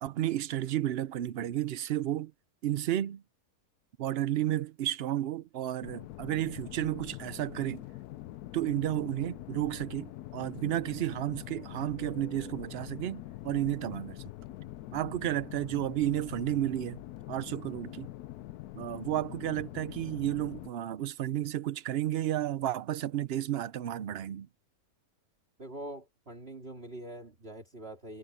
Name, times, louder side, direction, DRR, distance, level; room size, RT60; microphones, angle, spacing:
voice 1, 0.0-2.3 2.6-3.2 4.0-7.8 8.5-14.2 14.9-17.0 17.3-18.1 18.7-24.5, right 12 dB, 65° right, 0.6 m, -32 dB
sound 1, 5.8-20.7, left 15 dB, 80° left, 1.1 m, -44 dB
voice 2, 25.6-28.2, right 1 dB, 40° right, 3.1 m, -44 dB
omnidirectional pair, 1.6 m